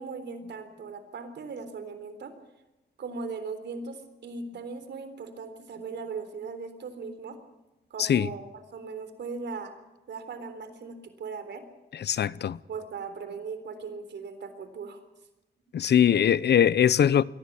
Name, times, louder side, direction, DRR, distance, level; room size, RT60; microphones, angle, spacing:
voice 1, 0.0-2.3 3.0-7.4 7.9-8.5 8.7-9.8 10.1-11.6 12.7-15.0, right 4 dB, 90° right, 3.7 m, -38 dB
voice 2, 8.0-8.3 11.9-12.6 15.7-17.2, left 9 dB, 75° left, 0.7 m, -22 dB
23.0 x 17.5 x 8.6 m
cardioid pair, 85°, 18 cm